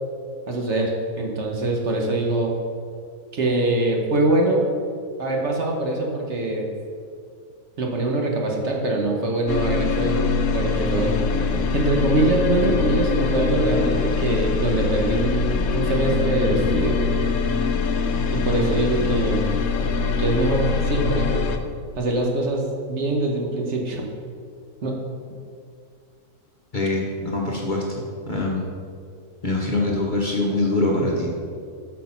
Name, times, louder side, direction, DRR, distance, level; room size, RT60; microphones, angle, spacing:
voice 1, 0.5-2.5 3.3-4.6 5.2-6.7 7.8-10.3 10.5-11.2 11.7-17.0 18.3-19.6 20.2-21.3 22.0-24.1 24.8-24.9, right 2 dB, 55° right, 0 dB, 1.2 m, -23 dB
sound 1, 9.5-21.6, left 4 dB, 65° left, 0.9 m, -23 dB
voice 2, 26.7-28.7 29.4-31.3, left 2 dB, 40° left, -2 dB, 0.8 m, -24 dB
8.1 x 4.3 x 5.6 m, 2.2 s
omnidirectional pair, 1.6 m